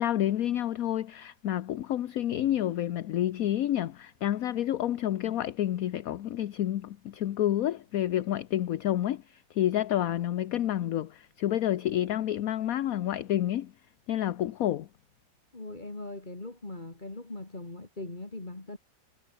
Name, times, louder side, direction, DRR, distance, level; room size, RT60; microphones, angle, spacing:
voice 1, 0.0-13.7 14.1-14.9, left 12 dB, 60° left, 1.1 m, -29 dB
voice 2, 15.5-18.8, left 2 dB, 25° left, 3.1 m, -40 dB
omnidirectional pair, 1.9 m